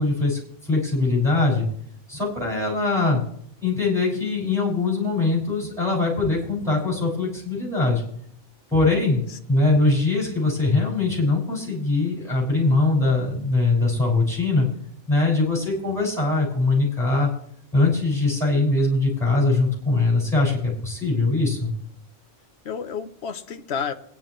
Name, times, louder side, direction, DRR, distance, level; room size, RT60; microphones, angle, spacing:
voice 1, 0.0-1.7 2.1-3.2 3.6-8.0 8.7-9.2 9.5-14.7 15.1-17.3 17.7-21.7, left 3 dB, ahead, -5 dB, 6.0 m, -22 dB
voice 2, 9.7-10.1 22.6-23.9, left 6 dB, 60° left, 7 dB, 1.2 m, -31 dB
22.0 x 10.5 x 3.2 m, 0.68 s
omnidirectional pair, 1.3 m